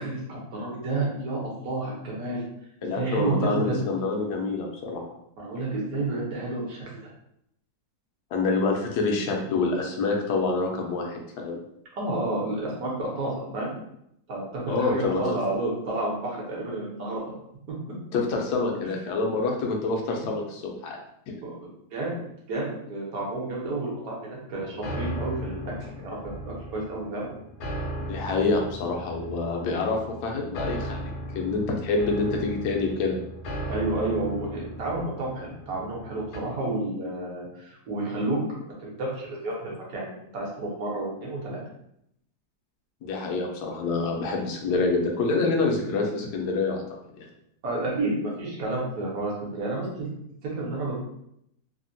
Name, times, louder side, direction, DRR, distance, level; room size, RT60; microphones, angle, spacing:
voice 1, 0.0-2.4 2.9-3.8 5.4-7.0 12.0-13.7 14.3-17.2 21.4-22.2 22.5-27.3 33.7-41.6 47.6-50.1 50.4-51.0, right 2 dB, 65° right, -3 dB, 1.3 m, -30 dB
voice 2, 2.8-5.0 8.3-11.6 14.7-15.4 18.1-21.0 28.0-33.2 43.0-46.8 47.2-47.3, left 3 dB, 80° left, 1 dB, 1.1 m, -27 dB
sound 1, 24.6-36.4, equal, 60° left, 0.8 m, -37 dB
3.3 x 2.1 x 2.6 m, 0.77 s
omnidirectional pair, 1.7 m